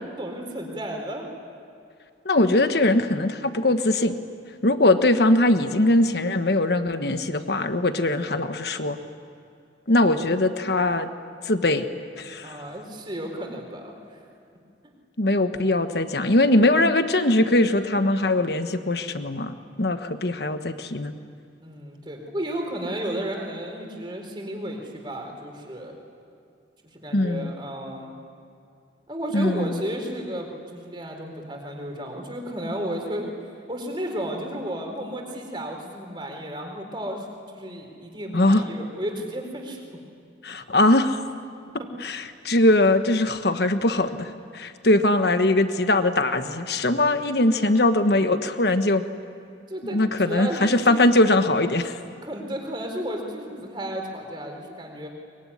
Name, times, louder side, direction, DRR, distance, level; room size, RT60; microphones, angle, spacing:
voice 1, 0.2-1.3 12.4-14.2 21.6-26.0 26.9-28.2 29.1-39.8 41.8-41.9 49.7-51.1 52.2-55.1, equal, 25° right, 2 dB, 4.2 m, -33 dB
voice 2, 2.2-4.2 4.6-9.0 9.9-11.1 11.4-11.9 12.2-12.6 15.2-21.1 27.1-27.5 29.3-29.8 38.3-38.6 40.4-41.2 42.0-49.0 49.9-52.0, left 2 dB, 60° left, 9 dB, 1.3 m, -21 dB
23.5 x 23.0 x 9.9 m, 2.4 s
head